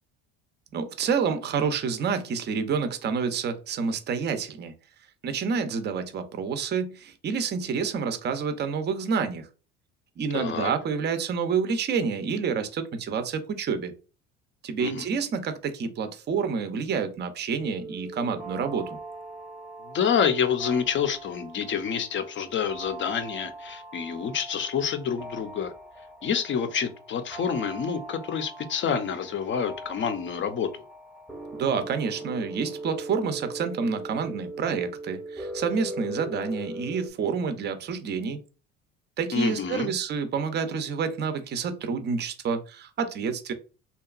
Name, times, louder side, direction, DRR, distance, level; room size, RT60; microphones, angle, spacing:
voice 1, 0.7-4.7 5.2-9.5 10.2-13.9 14.6-19.0 31.5-38.4 39.2-43.5, right 6 dB, 30° right, 0.5 m, -28 dB
voice 2, 10.3-10.7 14.8-15.1 19.9-25.7 26.2-30.7 39.3-39.9, left 7 dB, 35° left, 0.5 m, -28 dB
sound 1, 17.6-37.1, right 2 dB, ahead, 0.8 m, -40 dB
2.8 x 2.2 x 2.4 m
supercardioid pair, 80°, 33 cm